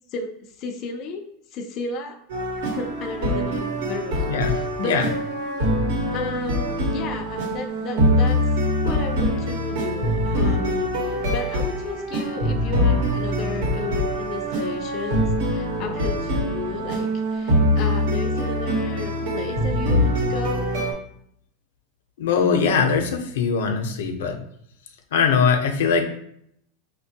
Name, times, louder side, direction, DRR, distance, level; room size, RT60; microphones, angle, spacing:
voice 1, 0.1-1.2 1.5-2.2 2.7-5.1 6.1-8.4 8.8-20.7, left 4 dB, 30° left, 3 dB, 0.4 m, -33 dB
sound 1, 2.3-20.9, equal, 60° right, 1.0 m, -24 dB
voice 2, 22.2-24.4 25.1-26.1, left 6 dB, 90° left, 5 dB, 0.6 m, -21 dB
5.0 x 2.1 x 2.7 m, 0.71 s
supercardioid pair, 170°, 0 cm